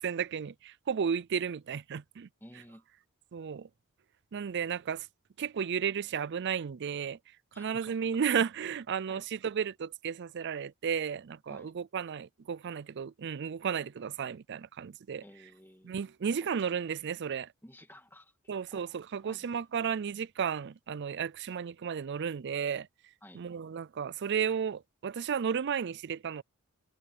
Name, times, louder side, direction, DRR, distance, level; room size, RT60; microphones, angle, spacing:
voice 1, 0.0-2.3 3.3-3.7 4.3-5.1 5.4-7.2 7.6-15.2 15.8-17.5 18.5-22.9 23.3-26.4, right 7 dB, 50° right, 0.4 m, -33 dB
voice 2, 2.4-2.8 7.5-8.0 9.0-9.2 11.5-11.8 15.2-16.0 17.6-19.5 19.8-19.9 23.2-23.5, left 1 dB, 10° left, 2.2 m, -54 dB
head